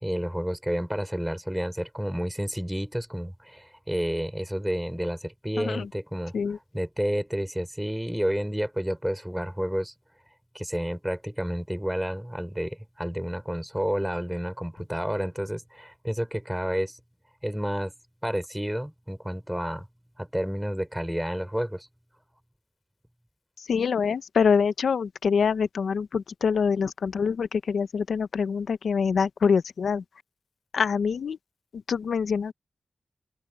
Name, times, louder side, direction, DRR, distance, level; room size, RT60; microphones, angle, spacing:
voice 1, 0.0-6.3 6.7-9.9 10.5-17.0 17.4-17.9 18.2-19.9 20.2-21.9, equal, 5° right, 5.8 m, -30 dB
voice 2, 5.6-5.9 6.3-6.6 23.6-30.0 30.7-31.4 31.7-32.5, left 6 dB, 80° left, 0.8 m, -25 dB
open air
cardioid pair, 40°, 0 cm